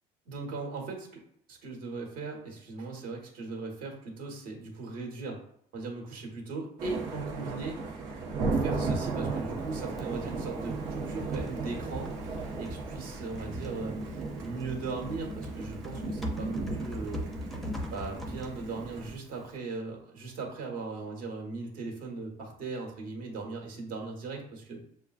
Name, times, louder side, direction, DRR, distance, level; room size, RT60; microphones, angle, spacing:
voice 1, 0.3-1.2 1.5-5.4 5.7-7.9 8.5-17.3 17.9-24.8, right 3 dB, 65° right, 0 dB, 1.4 m, -38 dB
sound 1, 6.8-19.1, right 3 dB, 85° right, 1.2 m, -35 dB
Typing, 8.5-19.6, left 1 dB, ahead, 0.6 m, -44 dB
6.9 x 2.3 x 2.4 m, 0.67 s
cardioid pair, 150°, 16 cm